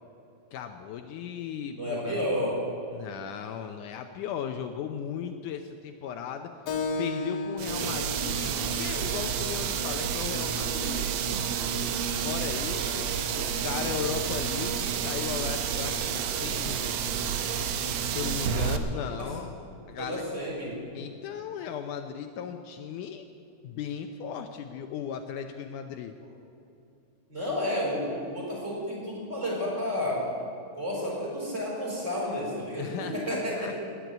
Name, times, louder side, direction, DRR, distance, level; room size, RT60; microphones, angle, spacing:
voice 1, 0.5-2.2 2.9-6.5 7.0-11.1 12.2-13.1 13.3-16.8 18.1-19.5 19.9-20.2 20.9-23.2 23.6-26.2 32.8-33.7, left 8 dB, 75° left, 6 dB, 2.1 m, -36 dB
voice 2, 1.7-2.6 13.1-13.4 19.0-19.4 20.0-20.8 27.3-30.3 30.8-33.8, left 1 dB, 20° right, -5 dB, 4.9 m, -31 dB
Keyboard (musical), 6.7-11.7, left 3 dB, 60° left, 2.5 m, -37 dB
sound 1, 7.6-18.8, right 7 dB, 70° right, 1.6 m, -30 dB
18.0 x 8.3 x 9.2 m, 2.7 s
omnidirectional pair, 3.8 m